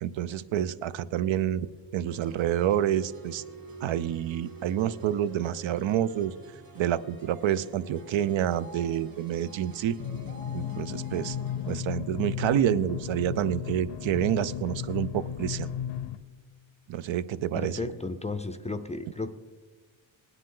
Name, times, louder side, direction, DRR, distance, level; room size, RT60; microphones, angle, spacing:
voice 1, 0.0-1.7 1.9-3.4 3.8-6.3 6.8-10.0 10.5-11.4 11.7-15.7 16.9-17.8, right 10 dB, 75° right, 15 dB, 0.6 m, -28 dB
sound 1, 2.1-11.8, right 2 dB, 50° right, 2.4 m, -48 dB
sound 2, 10.0-16.2, left 9 dB, 65° left, 0.6 m, -34 dB
voice 2, 17.5-19.4, left 3 dB, 15° left, 7 dB, 0.4 m, -34 dB
19.0 x 10.0 x 3.8 m, 1.4 s
wide cardioid pair, 145°, 47 cm